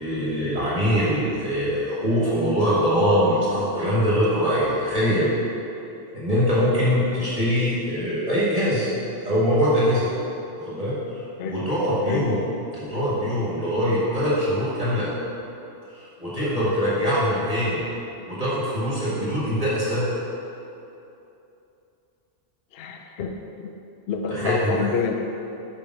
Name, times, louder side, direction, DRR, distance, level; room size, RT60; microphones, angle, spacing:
voice 1, 0.0-5.3 6.1-8.9 9.2-10.1 10.6-12.4 12.7-15.1 15.9-17.8 18.3-20.1 24.3-24.7, equal, 30° right, -9 dB, 1.9 m, -23 dB
voice 2, 11.4-11.7 12.1-12.3 22.7-23.7 24.1-25.1, left 6 dB, 65° left, 3 dB, 0.8 m, -28 dB
6.9 x 5.2 x 6.1 m, 2.8 s
omnidirectional pair, 1.2 m